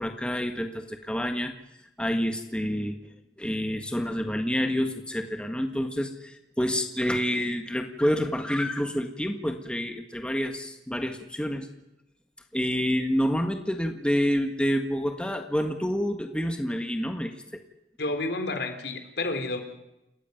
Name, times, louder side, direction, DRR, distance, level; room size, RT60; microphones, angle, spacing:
voice 1, 0.0-1.5 2.0-3.0 3.4-11.7 12.5-17.6, equal, 5° left, 5 dB, 1.6 m, -28 dB
voice 2, 18.0-19.6, left 2 dB, 75° left, 7 dB, 3.5 m, -30 dB
29.0 x 15.0 x 9.3 m, 0.91 s
head